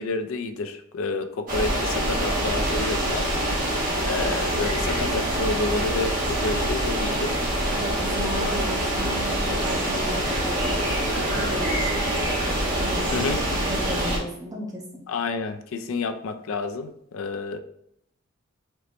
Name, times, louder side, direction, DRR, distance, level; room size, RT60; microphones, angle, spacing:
voice 1, 0.0-3.2 4.0-7.3 8.2-8.6 13.1-13.4 15.1-17.6, left 3 dB, 70° left, 7 dB, 0.4 m, -29 dB
sound 1, 1.5-14.2, right 1 dB, 40° right, 1.1 m, -25 dB
voice 2, 7.8-10.9 11.3-12.1 12.7-13.3 13.6-15.0, equal, 15° right, -3 dB, 0.9 m, -35 dB
4.4 x 3.0 x 2.9 m, 0.72 s
head